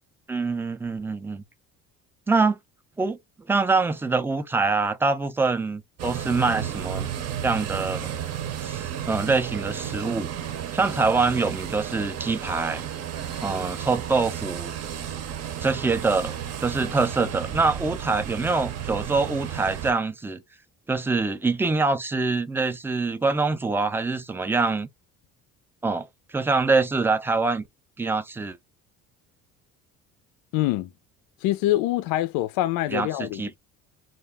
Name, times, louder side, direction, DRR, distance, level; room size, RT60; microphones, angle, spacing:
voice 1, 0.3-1.4 2.3-2.6 3.0-3.2 3.5-7.1 7.4-8.2 8.6-10.3 10.7-12.8 13.4-14.7 15.6-20.4 20.9-24.9 25.8-27.6 28.0-28.6 32.9-33.6, right 3 dB, 5° right, 0.3 m, -25 dB
sound 1, 6.0-19.9, right 9 dB, 50° right, 0.7 m, -33 dB
voice 2, 30.5-30.9 31.4-33.4, left 15 dB, 80° left, 0.5 m, -24 dB
2.4 x 2.2 x 3.4 m
cardioid pair, 100°, 34 cm